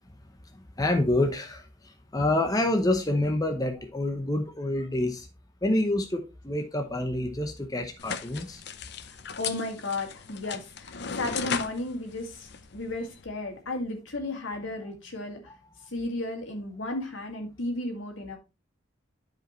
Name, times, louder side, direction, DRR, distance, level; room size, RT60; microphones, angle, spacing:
voice 1, 0.5-5.3 5.6-8.6, left 1 dB, 20° left, 0.8 m, -27 dB
sound 1, 8.0-13.2, left 6 dB, 55° left, 0.6 m, -37 dB
voice 2, 9.1-15.4 15.9-18.4, left 2 dB, 75° left, 2.3 m, -34 dB
12.0 x 5.0 x 3.1 m
head